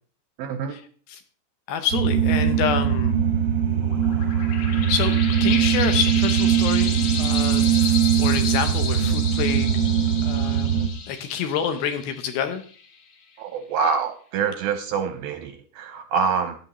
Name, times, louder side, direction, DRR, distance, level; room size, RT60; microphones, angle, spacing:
voice 1, 0.4-0.8 13.4-16.6, right 6 dB, 80° right, 8 dB, 2.2 m, -26 dB
voice 2, 1.7-3.2 4.9-9.7 10.2-10.8 11.1-12.6, left 8 dB, 75° left, 8 dB, 2.4 m, -27 dB
sound 1, 1.9-10.9, right 9 dB, 60° right, 0.9 m, -21 dB
sound 2, 3.7-12.9, left 5 dB, 50° left, 3.7 m, -33 dB
15.0 x 11.0 x 3.1 m, 0.43 s
omnidirectional pair, 4.9 m